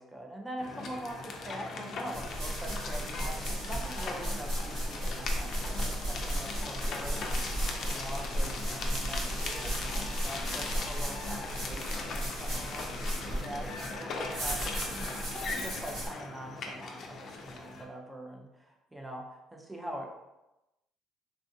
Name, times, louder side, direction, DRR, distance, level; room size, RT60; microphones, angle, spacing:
voice 1, 0.0-9.8 10.2-18.4 18.9-19.2 19.5-20.1, right 1 dB, 10° right, 1 dB, 0.5 m, -43 dB
sound 1, 0.6-17.8, left 3 dB, 50° left, 0.4 m, -39 dB
sound 2, 2.1-16.1, right 1 dB, 80° right, 1.4 m, -35 dB
3.5 x 2.4 x 2.6 m, 0.96 s
cardioid pair, 130°, 0 cm